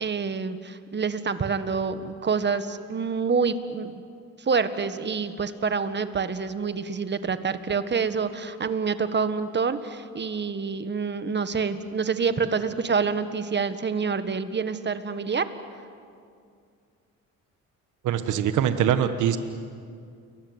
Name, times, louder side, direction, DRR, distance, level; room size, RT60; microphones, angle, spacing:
voice 1, 0.0-3.9 4.4-15.5, right 5 dB, 35° right, 11 dB, 1.6 m, -27 dB
voice 2, 18.0-19.4, right 9 dB, 80° right, 10 dB, 1.4 m, -23 dB
29.5 x 22.5 x 8.1 m, 2.3 s
cardioid pair, 90°, 30 cm